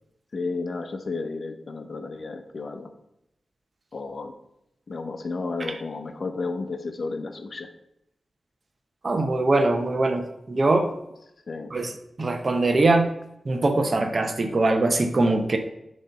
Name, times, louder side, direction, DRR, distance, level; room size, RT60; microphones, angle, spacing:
voice 1, 0.3-2.9 3.9-4.3 4.9-7.7 11.5-11.7, left 3 dB, 65° left, 7 dB, 0.7 m, -32 dB
voice 2, 9.0-10.9 11.7-11.9 12.2-13.1 13.5-15.6, right 2 dB, 50° right, 6 dB, 0.9 m, -22 dB
6.6 x 3.2 x 5.6 m, 0.83 s
cardioid pair, 50°, 0 cm